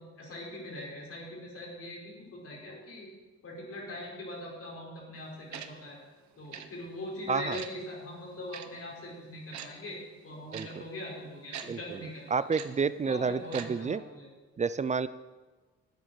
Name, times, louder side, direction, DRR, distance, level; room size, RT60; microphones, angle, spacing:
voice 1, 0.0-3.1 3.4-6.0 6.4-12.4 13.0-14.3, left 1 dB, 50° left, -2 dB, 4.4 m, -42 dB
Tick-tock, 5.5-5.7 6.5-6.7 7.5-7.7 8.5-8.7 9.5-9.7 10.5-10.7 11.5-11.7 12.5-12.7 13.5-13.7 13.9-14.0, right 9 dB, 70° right, 1.0 m, -40 dB
voice 2, 12.3-14.0 14.6-15.1, right 5 dB, 25° right, 16 dB, 0.4 m, -29 dB
9.7 x 8.1 x 6.5 m, 1.3 s
cardioid pair, 90°, 30 cm